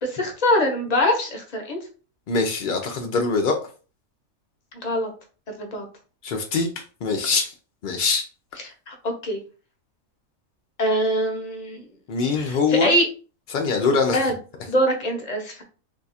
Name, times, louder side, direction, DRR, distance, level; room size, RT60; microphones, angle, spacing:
voice 1, 0.0-1.8 4.8-5.1 5.5-5.9 8.9-9.4 10.8-11.8 12.4-13.1 14.1-14.4 14.7-15.6, equal, 35° left, 3 dB, 0.7 m, -23 dB
voice 2, 2.3-3.6 6.2-7.5 7.8-8.2 12.1-12.9 13.5-14.2, left 4 dB, 75° left, 2 dB, 0.4 m, -23 dB
2.7 x 2.4 x 4.0 m, 0.36 s
omnidirectional pair, 1.4 m